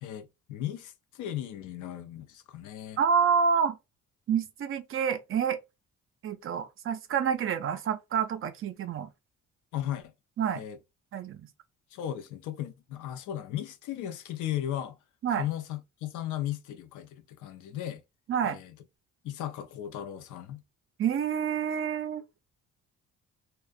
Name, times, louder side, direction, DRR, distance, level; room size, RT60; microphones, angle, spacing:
voice 1, 0.0-3.0 9.7-10.1 10.5-10.8 11.9-15.0 15.4-18.0 18.4-18.7 19.2-20.6, left 11 dB, 80° left, 0.5 m, -36 dB
voice 2, 3.0-3.8 4.3-5.6 6.2-9.1 10.4-10.6 11.1-11.5 15.2-15.5 18.3-18.6 21.0-22.2, right 7 dB, 45° right, 0.4 m, -28 dB
2.4 x 2.1 x 2.4 m
cardioid pair, 90°, 30 cm